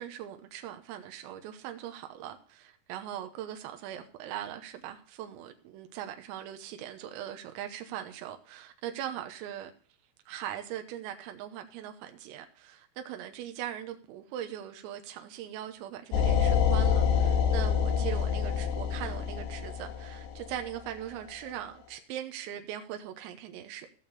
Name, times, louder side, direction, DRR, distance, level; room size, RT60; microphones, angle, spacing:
voice 1, 0.0-9.7 10.3-23.9, right 11 dB, 90° right, 3.8 m, -40 dB
sound 1, 16.1-20.9, left 7 dB, 75° left, 3.9 m, -27 dB
17.5 x 6.8 x 4.2 m
omnidirectional pair, 5.8 m